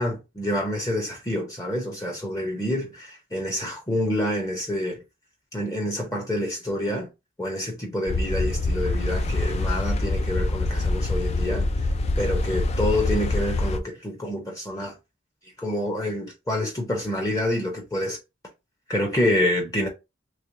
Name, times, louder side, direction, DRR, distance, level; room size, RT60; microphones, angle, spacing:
voice 1, 0.0-5.0 5.5-7.1 7.4-11.9 12.2-15.0 15.6-18.2 18.9-19.9, left 1 dB, 20° left, 0.7 m, -27 dB
sound 1, 8.1-13.8, left 2 dB, 35° left, 0.4 m, -25 dB
3.3 x 3.2 x 2.7 m
head